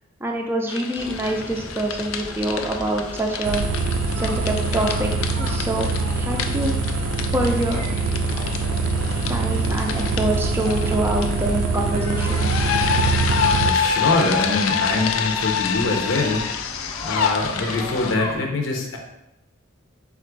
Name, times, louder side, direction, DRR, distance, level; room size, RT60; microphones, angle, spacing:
voice 1, 0.2-3.6 4.2-5.1 5.4-5.9 6.2-7.0 7.3-7.8 9.3-12.5, right 1 dB, 10° right, 1 dB, 0.4 m, -25 dB
sound 1, 0.7-18.1, left 7 dB, 90° left, 0.4 m, -28 dB
sound 2, 1.0-18.4, left 1 dB, 15° left, 0.8 m, -37 dB
sound 3, 3.4-13.7, right 3 dB, 85° right, 0.4 m, -24 dB
voice 2, 13.6-16.4 17.0-19.0, left 2 dB, 75° left, 1 dB, 0.8 m, -23 dB
4.2 x 2.5 x 4.5 m, 0.88 s
head